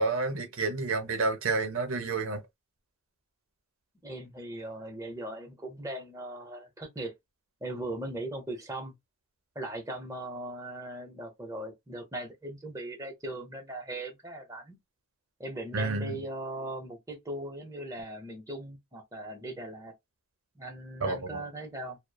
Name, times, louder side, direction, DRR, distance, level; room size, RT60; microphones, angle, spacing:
voice 1, 0.0-2.4 15.7-16.2 21.0-21.4, right 3 dB, 60° right, 0.7 m, -29 dB
voice 2, 4.0-7.2 7.6-8.9 9.5-14.8 15.4-19.9 20.6-22.0, right 1 dB, 15° right, 0.7 m, -39 dB
3.0 x 2.0 x 2.2 m
head